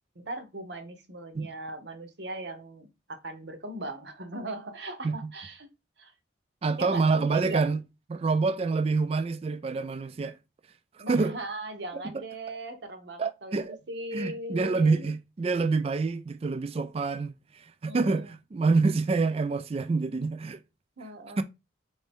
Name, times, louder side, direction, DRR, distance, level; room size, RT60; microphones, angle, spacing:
voice 1, 0.2-5.7 6.0-6.1 6.8-7.7 11.0-15.1 17.9-18.3 21.0-21.4, right 1 dB, 60° right, 0.8 m, -39 dB
voice 2, 6.6-7.8 8.1-10.4 11.1-11.4 11.9-12.2 13.2-13.8 14.1-20.6 21.4-21.5, right 4 dB, 30° right, 0.3 m, -27 dB
4.3 x 2.7 x 3.4 m
head